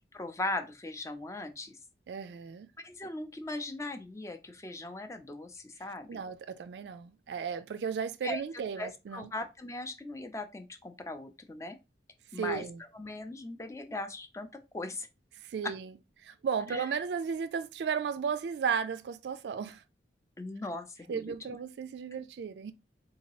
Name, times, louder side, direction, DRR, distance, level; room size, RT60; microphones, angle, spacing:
voice 1, 0.1-1.8 2.8-6.2 8.2-11.8 12.3-12.6 12.9-14.5 14.7-15.1 15.6-15.7 16.7-16.8 20.4-21.6, left 2 dB, 15° left, 0.4 m, -39 dB
voice 2, 2.1-2.7 6.1-9.3 12.3-12.8 15.4-15.9 16.2-19.8 21.1-22.7, right 6 dB, 70° right, 0.3 m, -34 dB
3.7 x 2.8 x 2.9 m
head